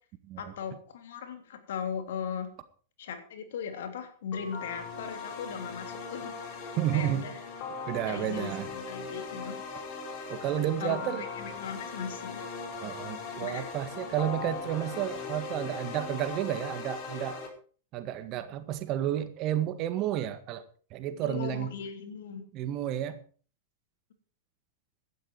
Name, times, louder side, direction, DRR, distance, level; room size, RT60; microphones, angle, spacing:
voice 1, 0.4-2.5 3.0-7.3 8.0-9.6 10.8-12.4 13.4-13.7 21.2-22.4, left 7 dB, 60° left, 6 dB, 3.2 m, -38 dB
sound 1, 4.3-17.5, left 4 dB, 45° left, 5.2 m, -39 dB
voice 2, 6.8-7.3 7.9-8.7 10.3-11.2 12.8-17.4 17.9-20.6 20.9-21.7 22.5-23.2, right 11 dB, 40° right, 11 dB, 1.8 m, -31 dB
16.5 x 12.0 x 4.7 m, 0.42 s
figure-of-eight pair, 95°, 0 cm